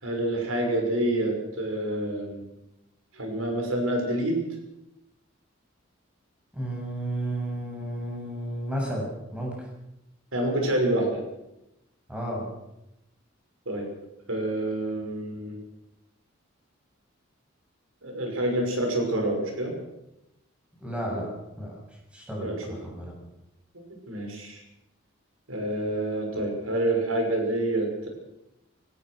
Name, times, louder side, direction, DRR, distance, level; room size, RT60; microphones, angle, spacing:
voice 1, 0.0-2.4 3.1-4.4 10.3-11.2 13.7-13.9 14.3-15.6 18.0-19.7 22.4-22.6 24.1-24.6 25.5-28.1, right 1 dB, 90° right, 2 dB, 6.1 m, -27 dB
voice 2, 6.5-9.7 12.1-12.4 20.8-21.3 21.6-21.7 22.1-23.1, right 1 dB, 5° right, -2 dB, 7.5 m, -32 dB
23.5 x 17.5 x 6.5 m, 0.90 s
head